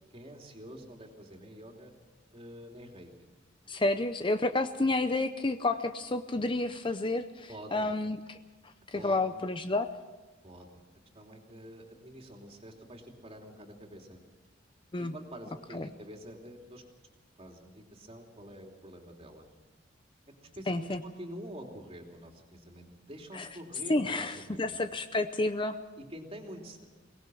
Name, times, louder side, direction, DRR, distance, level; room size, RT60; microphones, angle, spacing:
voice 1, 0.1-1.9 2.3-3.3 7.5-7.9 8.9-9.2 10.4-10.8 11.1-14.2 15.0-16.8 17.4-19.5 20.4-24.8 26.0-26.9, equal, 30° right, 2 dB, 3.0 m, -47 dB
voice 2, 3.7-8.4 8.9-9.9 14.9-15.1 15.7-15.9 20.7-21.0 23.3-23.5 23.9-25.8, left 2 dB, 25° left, 9 dB, 0.7 m, -30 dB
23.5 x 19.0 x 6.3 m, 1.3 s
head